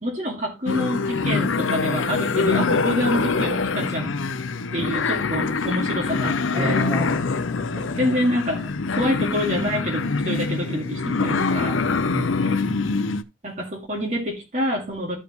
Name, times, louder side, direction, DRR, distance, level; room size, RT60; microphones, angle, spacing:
voice 1, 0.0-4.2 4.7-6.8 8.0-11.8 13.4-15.2, equal, 40° right, 2.1 m, -26 dB
sound 1, 0.7-13.2, left 4 dB, 90° left, 0.7 m, -24 dB
voice 2, 6.5-8.1 12.1-13.0, left 1 dB, 15° right, 2.4 m, -30 dB
13.5 x 5.2 x 3.1 m
head